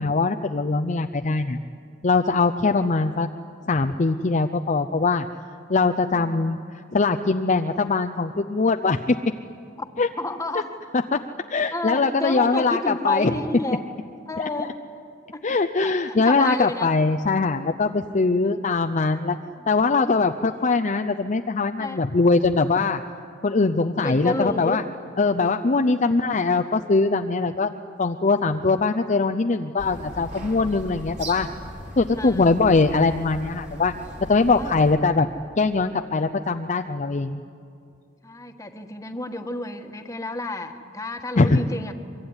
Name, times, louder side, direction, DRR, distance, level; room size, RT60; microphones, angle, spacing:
voice 1, 0.0-1.6 2.0-3.3 3.7-5.2 5.7-6.6 6.9-9.2 10.0-10.1 11.1-11.2 11.5-13.3 14.4-14.5 15.4-19.4 19.7-23.0 23.4-24.8 25.2-27.7 28.0-31.5 32.0-33.9 34.3-35.3 35.6-37.4 41.4-41.6, left 3 dB, 40° left, 6 dB, 0.6 m, -21 dB
voice 2, 6.1-6.4 9.8-10.7 11.7-13.8 14.3-14.7 15.3-15.4 15.8-16.9 18.4-18.6 19.6-19.7 21.8-22.0 23.9-24.8 32.2-32.5 34.5-34.7 38.2-41.9, left 2 dB, 15° left, 6 dB, 1.5 m, -31 dB
sound 1, 29.8-35.0, equal, 40° right, 3.5 m, -38 dB
23.5 x 23.5 x 9.7 m, 2.5 s
head